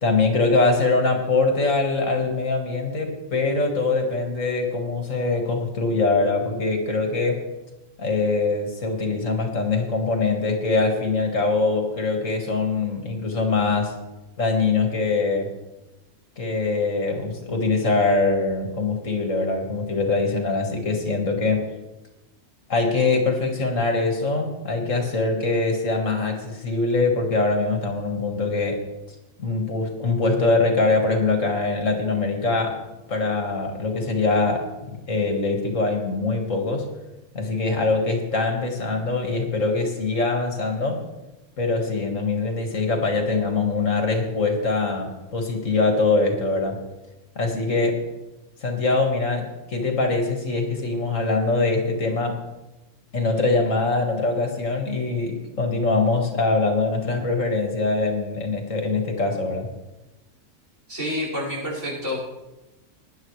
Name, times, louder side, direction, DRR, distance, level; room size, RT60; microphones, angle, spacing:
voice 1, 0.0-7.5 8.0-14.0 14.4-15.5 16.4-21.7 22.7-28.8 29.4-32.8 33.1-34.7 35.1-36.9 37.3-41.0 41.6-46.8 47.4-48.1 48.6-52.4 53.1-59.7, left 3 dB, 70° left, 3 dB, 2.2 m, -23 dB
voice 2, 60.9-62.2, left 1 dB, 65° right, -5 dB, 5.7 m, -28 dB
19.5 x 10.0 x 3.2 m, 1.0 s
omnidirectional pair, 1.4 m